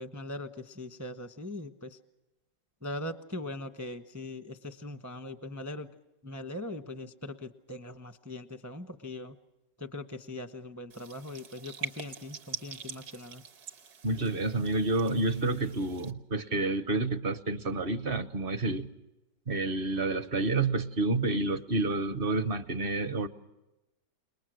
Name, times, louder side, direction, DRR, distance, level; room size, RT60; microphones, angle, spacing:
voice 1, 0.0-2.0 2.8-5.9 6.2-9.4 9.8-13.4, left 1 dB, 15° right, 9 dB, 0.5 m, -41 dB
sound 1, 10.9-16.1, right 6 dB, 65° right, 1.7 m, -44 dB
voice 2, 14.0-18.9 19.5-23.3, right 2 dB, 40° right, 12 dB, 0.8 m, -29 dB
29.5 x 19.5 x 6.3 m, 1.0 s
omnidirectional pair, 1.9 m